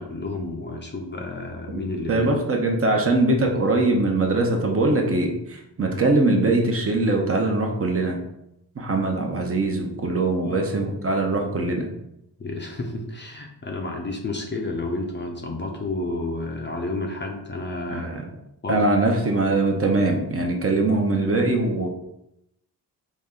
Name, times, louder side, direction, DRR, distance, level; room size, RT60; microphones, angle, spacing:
voice 1, 0.0-2.3 10.4-10.8 11.4-11.6 12.4-18.1 18.6-18.9, left 2 dB, 25° left, 2 dB, 0.6 m, -31 dB
voice 2, 1.7-8.2 8.8-11.9 17.9-18.2 18.7-21.9, right 2 dB, 35° right, 1 dB, 0.8 m, -22 dB
4.2 x 3.2 x 3.7 m, 0.83 s
cardioid pair, 105°, 41 cm